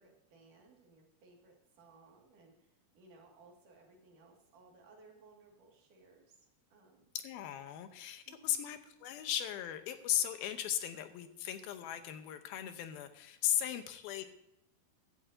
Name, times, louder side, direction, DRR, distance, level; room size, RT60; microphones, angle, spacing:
voice 1, 0.0-7.1 8.3-8.7 13.7-13.9, right 3 dB, 60° right, 0 dB, 3.5 m, -61 dB
voice 2, 7.2-14.3, left 11 dB, 80° left, 9 dB, 2.6 m, -37 dB
15.5 x 12.0 x 2.7 m, 0.84 s
omnidirectional pair, 4.5 m